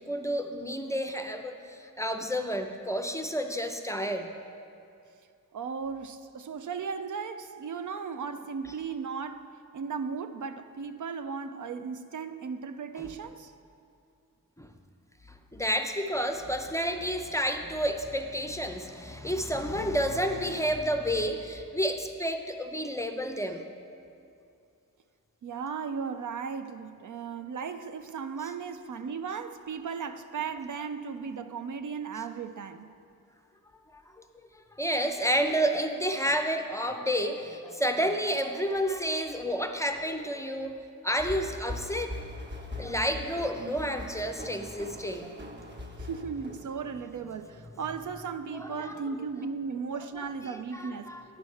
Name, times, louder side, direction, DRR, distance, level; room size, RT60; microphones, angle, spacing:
voice 1, 0.0-4.3 13.0-13.1 14.6-14.7 15.3-23.6 33.9-42.1 42.8-45.3 48.5-49.0 50.1-51.2, equal, 10° left, 0.5 m, -30 dB
voice 2, 5.5-9.5 9.7-13.5 25.4-32.9 46.0-51.2, right 5 dB, 60° right, 0.4 m, -36 dB
sound 1, 41.2-47.2, left 1 dB, 30° right, 1.0 m, -41 dB
9.4 x 4.2 x 6.4 m
cardioid pair, 55°, 35 cm